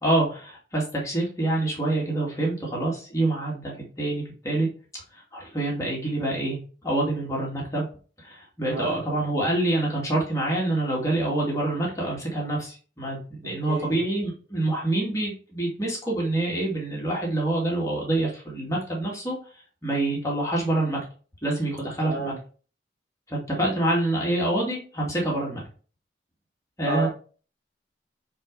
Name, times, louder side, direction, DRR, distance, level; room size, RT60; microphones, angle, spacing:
voice 1, 0.0-4.7 5.3-6.6 6.8-7.9 8.2-19.4 19.8-21.0 21.4-22.3 23.5-25.6 26.8-27.1, right 1 dB, 20° left, -4 dB, 2.4 m, -26 dB
voice 2, 13.7-14.0 22.1-22.4 26.9-27.1, right 3 dB, 70° right, 1 dB, 2.2 m, -30 dB
8.8 x 3.9 x 4.8 m, 0.39 s
head